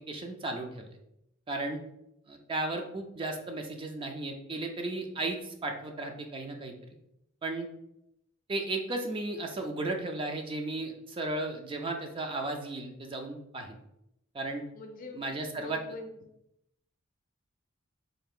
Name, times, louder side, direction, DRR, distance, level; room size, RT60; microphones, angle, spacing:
voice 1, 0.1-0.9 1.5-1.8 2.3-6.7 7.4-7.7 8.5-13.8 14.3-14.6 15.1-15.8, right 2 dB, 25° right, 4 dB, 0.4 m, -35 dB
voice 2, 14.7-16.2, left 2 dB, 45° left, 4 dB, 0.5 m, -44 dB
3.7 x 2.4 x 3.6 m, 0.80 s
head